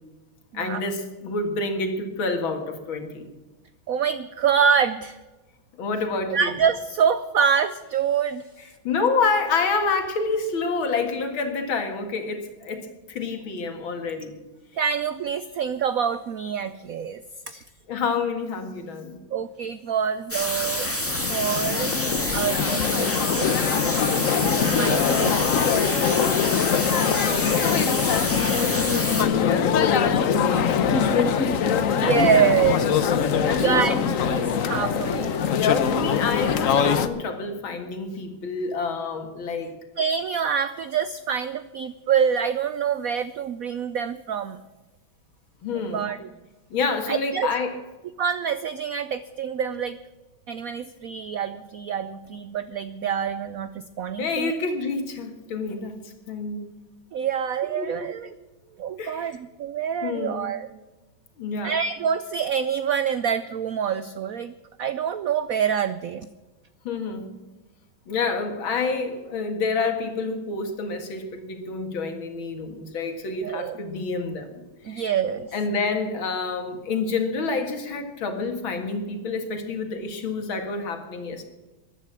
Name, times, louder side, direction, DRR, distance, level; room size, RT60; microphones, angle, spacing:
voice 1, 0.5-3.3 5.8-6.5 8.6-14.4 17.9-19.2 27.2-27.9 29.4-31.6 33.4-33.9 35.9-39.7 45.6-46.1 46.7-47.8 54.2-56.7 57.8-58.1 59.0-59.4 60.0-60.5 61.4-61.7 66.8-67.3 68.1-74.5 74.9-75.1 75.5-81.4, left 4 dB, 75° left, 6 dB, 2.6 m, -28 dB
voice 2, 3.9-5.2 6.3-8.5 14.8-17.2 17.5-17.6 19.3-20.9 21.3-21.9 22.3-23.5 24.2-25.3 28.4-28.8 31.9-32.9 33.6-35.4 40.0-44.6 45.9-46.3 47.1-47.5 48.2-50.0 50.5-54.5 57.1-58.3 58.8-60.7 61.6-64.5 64.8-66.3 73.4-73.8 74.8-75.5, right 7 dB, 85° right, 13 dB, 0.7 m, -26 dB
sound 1, 20.3-29.2, left 1 dB, 5° left, 1.8 m, -28 dB
sound 2, 21.0-37.1, left 7 dB, 60° left, 0.9 m, -23 dB
14.0 x 11.0 x 7.5 m, 1.2 s
omnidirectional pair, 2.2 m